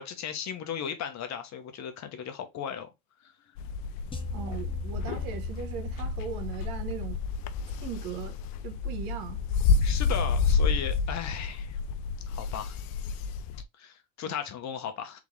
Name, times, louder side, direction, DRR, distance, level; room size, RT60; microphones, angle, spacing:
voice 1, 0.0-2.9 3.2-3.3 9.8-11.8 12.3-12.8 13.8-15.2, left 8 dB, 45° left, 1.1 m, -36 dB
sound 1, 3.6-13.6, left 5 dB, 65° left, 0.6 m, -30 dB
sound 2, 4.1-8.4, left 1 dB, 15° left, 0.7 m, -41 dB
voice 2, 4.3-7.2 7.8-8.4 8.6-9.4 14.2-14.3, right 7 dB, 65° right, 1.2 m, -38 dB
3.6 x 3.6 x 3.2 m
supercardioid pair, 115°, 37 cm